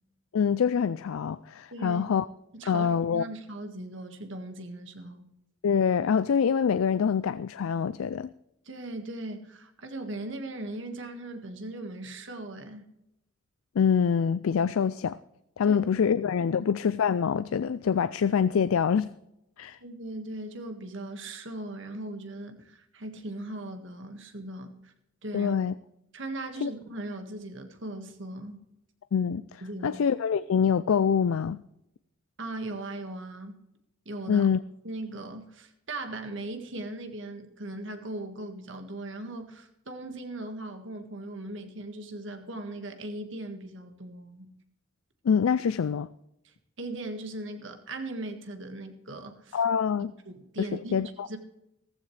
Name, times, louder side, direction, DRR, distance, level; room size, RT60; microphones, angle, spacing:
voice 1, 0.3-2.3 2.7-3.2 5.6-8.3 13.8-15.2 15.6-19.1 19.6-19.8 25.3-25.7 26.6-26.7 29.1-31.6 34.3-34.6 45.2-46.1 49.5-50.1 50.9-51.3, left 7 dB, 80° left, 0.4 m, -25 dB
voice 2, 1.7-2.0 2.5-5.3 8.7-12.9 15.7-15.8 16.5-16.7 19.8-24.9 25.2-25.6 26.1-28.6 29.6-30.0 32.4-33.6 34.1-34.5 34.8-44.5 46.4-49.6 50.3-51.4, right 2 dB, 60° right, 1.7 m, -39 dB
15.0 x 15.0 x 3.3 m
head